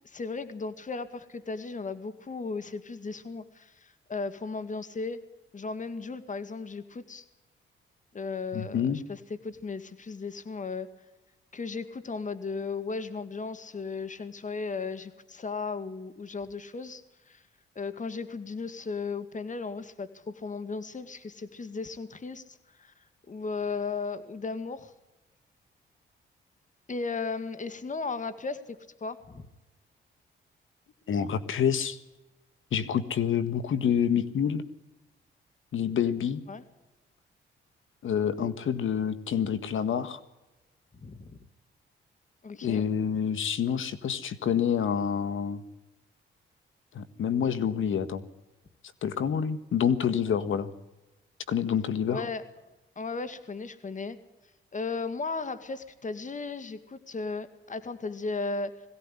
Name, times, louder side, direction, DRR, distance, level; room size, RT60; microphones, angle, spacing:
voice 1, 0.0-5.2 5.5-7.2 8.1-10.9 11.5-17.0 17.3-17.4 17.8-22.9 23.3-24.9 26.9-29.5 36.5-36.6 40.9-41.4 42.4-42.8 52.1-52.4 53.0-54.2 54.7-58.7, left 4 dB, 35° left, 12 dB, 1.9 m, -36 dB
voice 2, 8.5-9.0 31.1-32.0 32.7-34.6 35.7-36.4 38.0-40.2 42.6-45.6 46.9-48.2 49.0-50.7 51.5-52.2, left 8 dB, 70° left, 12 dB, 1.7 m, -27 dB
21.5 x 16.5 x 9.9 m, 1.0 s
cardioid pair, 75°, 21 cm